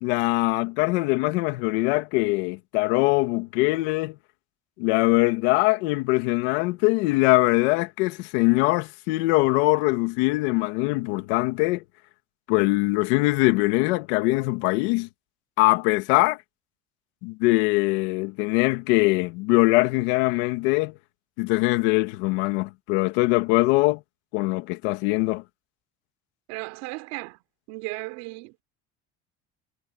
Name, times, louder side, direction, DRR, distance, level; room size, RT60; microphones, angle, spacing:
voice 1, 0.0-4.2 4.8-11.8 12.5-15.1 15.6-16.4 17.2-20.9 21.4-24.0 24.3-25.4, left 22 dB, 90° left, 2.1 m, -22 dB
voice 2, 26.5-27.4 27.7-28.6, right 24 dB, 85° right, 3.3 m, -35 dB
supercardioid pair, 105°, 33 cm